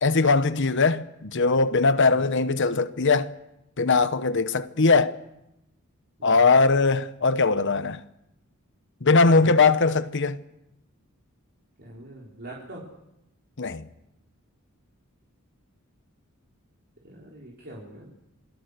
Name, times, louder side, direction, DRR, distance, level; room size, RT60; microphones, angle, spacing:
voice 1, 0.0-3.3 3.8-5.2 6.2-8.0 9.0-10.4 13.6-13.9, left 4 dB, 60° left, 1.0 m, -20 dB
voice 2, 9.4-9.9 11.8-12.9 17.0-18.1, right 1 dB, 50° right, 4.2 m, -43 dB
27.5 x 21.0 x 6.7 m
head